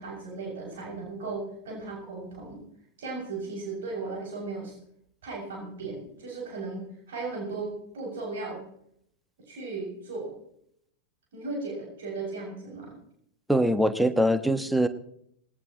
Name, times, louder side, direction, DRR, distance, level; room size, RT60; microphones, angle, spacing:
voice 1, 0.0-2.6 3.0-4.8 5.2-8.6 9.5-10.3 11.3-13.0, right 3 dB, 60° right, -2 dB, 6.4 m, -36 dB
voice 2, 13.5-14.9, equal, 5° right, 11 dB, 1.4 m, -23 dB
19.5 x 18.5 x 3.0 m, 0.68 s
figure-of-eight pair, 90°, 0 cm